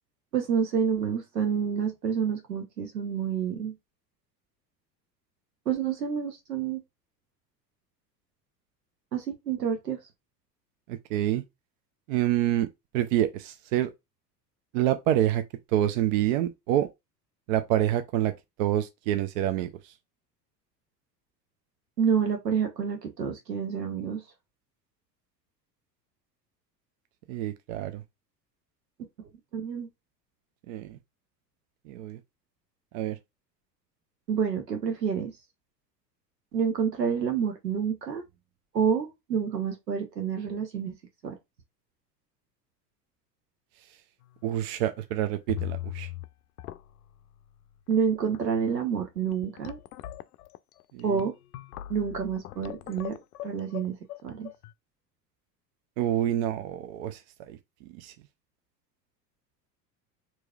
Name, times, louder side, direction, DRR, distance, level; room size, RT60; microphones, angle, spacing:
voice 1, 0.3-3.7 5.7-6.8 9.1-10.0 22.0-24.2 29.2-29.9 34.3-35.3 36.5-38.2 38.7-40.9 41.2-41.3 47.9-49.8 51.0-51.3 51.9-53.2 53.4-54.0 54.2-54.5, right 7 dB, 80° right, 0.8 m, -28 dB
voice 2, 10.9-11.4 12.1-12.7 12.9-13.9 14.7-15.4 15.7-16.9 17.5-18.3 18.6-19.7 27.3-28.0 30.7-31.0 31.9-32.2 32.9-33.2 44.4-46.1 50.9-51.2 56.0-57.2 57.5-57.6 58.0-58.1, right 12 dB, 50° right, 0.5 m, -27 dB
sound 1, 44.2-44.6 44.9-45.0 45.5-46.3 46.6-47.1 47.9-48.0 48.3-48.6 49.2-54.7, left 15 dB, 65° left, 0.5 m, -39 dB
4.6 x 2.9 x 2.3 m
figure-of-eight pair, 75°, 49 cm